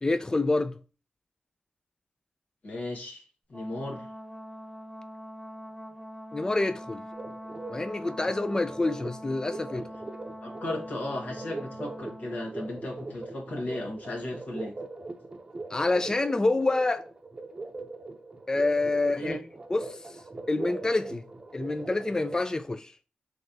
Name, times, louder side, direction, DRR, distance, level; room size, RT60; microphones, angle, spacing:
voice 1, 0.0-0.7 6.3-7.0 7.7-9.9 15.7-17.0 18.5-19.4 19.7-20.0 20.5-21.3 21.5-22.9, left 2 dB, 25° left, 0.3 m, -27 dB
voice 2, 2.6-3.2 3.5-4.1 9.7-9.8 10.4-14.7 19.2-19.4, left 1 dB, 70° left, 1.4 m, -35 dB
Brass instrument, 3.5-12.5, equal, 5° left, 1.8 m, -43 dB
sound 1, 7.1-22.5, right 2 dB, 35° right, 0.6 m, -41 dB
4.0 x 3.2 x 2.6 m
cardioid pair, 75°, 3 cm